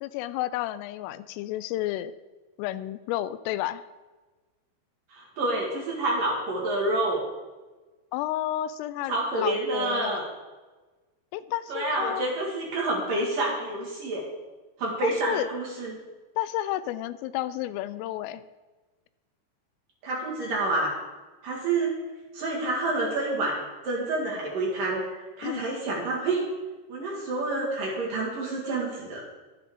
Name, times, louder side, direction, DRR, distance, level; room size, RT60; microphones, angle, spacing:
voice 1, 0.0-2.1 2.6-3.8 8.1-10.2 11.3-12.3 15.0-15.5 16.4-18.4 25.4-25.6, left 13 dB, 85° left, 14 dB, 3.1 m, -31 dB
voice 2, 5.1-7.2 9.1-10.2 11.7-14.2 14.8-16.0 20.0-20.9 21.4-21.9 22.3-25.0 25.4-26.4 26.9-29.2, right 2 dB, 55° right, -3 dB, 3.1 m, -28 dB
22.0 x 7.7 x 3.7 m, 1.2 s
omnidirectional pair, 5.8 m